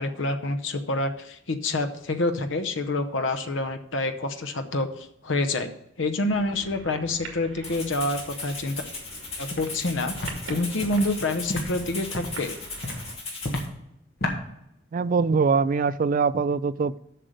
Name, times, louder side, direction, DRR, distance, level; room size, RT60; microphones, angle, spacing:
voice 1, 0.0-5.7 6.0-8.8 9.4-12.6, left 2 dB, 70° left, 0.8 m, -27 dB
sound 1, 6.3-13.1, right 2 dB, 90° right, 2.0 m, -43 dB
Rattle (instrument), 7.6-13.6, left 3 dB, 30° left, 2.6 m, -37 dB
Walk footsteps, 9.5-9.7 10.1-10.3 10.8-11.0 11.5-11.6 12.1-12.4 12.8-13.0 13.4-13.7 14.2-14.4, left 1 dB, 55° left, 1.7 m, -30 dB
voice 2, 14.9-17.0, right 5 dB, 45° right, 0.3 m, -23 dB
7.6 x 6.5 x 6.5 m
head